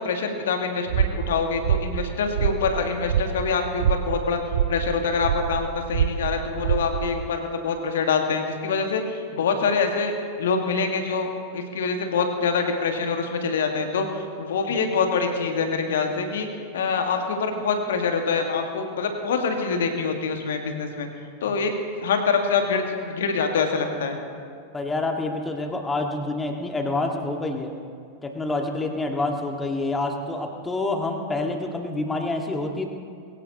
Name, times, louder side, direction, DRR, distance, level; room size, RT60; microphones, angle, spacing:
voice 1, 0.0-4.4 4.7-10.1 10.4-21.1 21.4-21.7 22.0-24.2, left 5 dB, 60° left, 4 dB, 1.8 m, -25 dB
sound 1, 0.9-7.3, right 9 dB, 60° right, 0.6 m, -26 dB
voice 2, 24.7-27.7 28.2-32.9, left 2 dB, 10° left, 3 dB, 1.8 m, -27 dB
22.0 x 16.0 x 3.0 m, 2.2 s
figure-of-eight pair, 90°, 0 cm